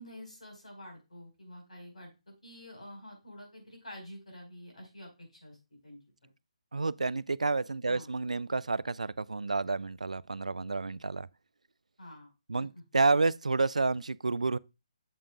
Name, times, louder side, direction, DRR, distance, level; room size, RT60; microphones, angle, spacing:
voice 1, 0.0-2.2 2.4-5.6 5.8-6.0 7.9-8.1 12.0-12.3, equal, 85° left, 5.0 m, -48 dB
voice 2, 6.7-11.3 12.5-14.6, right 3 dB, 85° right, 0.3 m, -30 dB
7.5 x 7.3 x 2.5 m
figure-of-eight pair, 145°, 4 cm